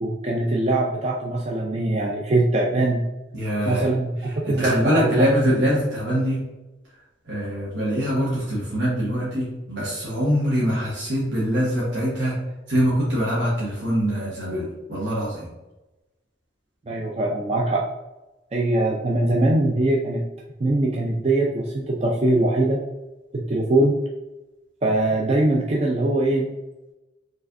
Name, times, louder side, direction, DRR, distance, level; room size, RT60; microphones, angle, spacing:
voice 1, 0.0-3.0 3.7-5.3 16.9-17.9 18.5-20.2 20.6-22.8 23.3-24.0 24.8-26.5, right 2 dB, 35° right, -1 dB, 0.4 m, -22 dB
voice 2, 3.3-3.9 4.2-6.4 7.2-12.4 12.7-15.5, equal, 85° right, -7 dB, 1.3 m, -23 dB
4.8 x 3.3 x 2.6 m, 1.0 s
head